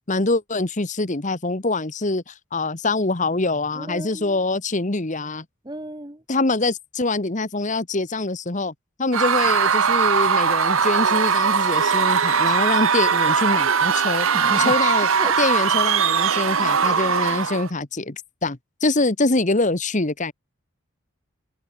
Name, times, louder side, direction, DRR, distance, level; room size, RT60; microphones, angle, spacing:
voice 1, 0.1-5.4 6.3-8.7 9.0-14.3 14.6-15.1 15.4-20.3, left 2 dB, 35° left, 1.2 m, -24 dB
voice 2, 3.7-4.4 5.6-6.2 14.3-15.6, right 1 dB, 20° right, 1.8 m, -33 dB
Screaming / Cheering / Crowd, 9.1-17.7, right 6 dB, 70° right, 1.2 m, -20 dB
sound 1, 13.2-13.3 13.8-14.1 14.5-15.4 15.7-16.8 17.1-17.4, left 6 dB, 75° left, 6.4 m, -51 dB
head